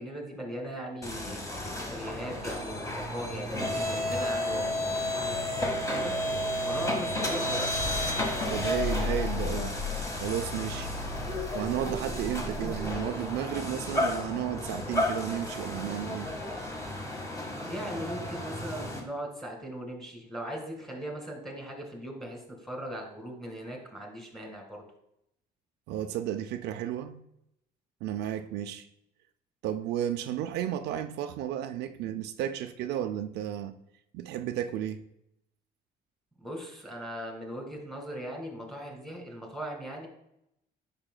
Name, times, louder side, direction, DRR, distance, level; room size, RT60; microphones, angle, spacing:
voice 1, 0.0-6.1 6.6-7.7 17.6-24.8 36.4-40.1, equal, ahead, 1.9 m, -39 dB
sound 1, 1.0-19.0, left 1 dB, 20° left, 1.5 m, -32 dB
voice 2, 8.5-9.8 10.2-10.9 11.5-16.3 25.9-27.2 28.0-28.9 29.6-33.8 34.1-35.0, right 11 dB, 80° right, 0.5 m, -33 dB
8.8 x 5.7 x 2.2 m
cardioid pair, 110°, 17 cm